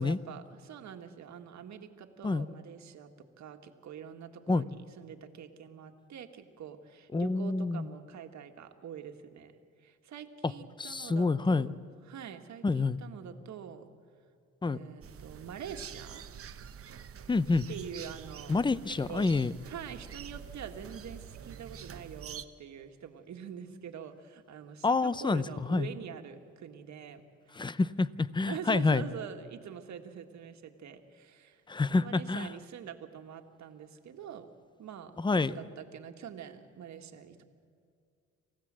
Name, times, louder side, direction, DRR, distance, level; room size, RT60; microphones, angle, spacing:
voice 1, 0.0-9.5 9.8-11.8 12.1-13.9 14.7-16.2 17.7-18.5 19.1-19.3 19.6-27.8 28.4-31.6 31.9-34.5 34.8-35.1 35.5-37.4, right 8 dB, 65° right, 6 dB, 1.8 m, -45 dB
voice 2, 7.1-7.9 10.8-11.7 12.6-13.0 14.6-14.8 17.3-17.7 18.5-19.5 24.8-25.9 27.6-29.0 31.7-32.5 35.2-35.5, left 3 dB, 15° left, 17 dB, 0.7 m, -28 dB
sound 1, 15.0-22.5, right 8 dB, 50° right, 1.0 m, -46 dB
27.5 x 15.5 x 7.6 m, 2.3 s
cardioid pair, 90°, 30 cm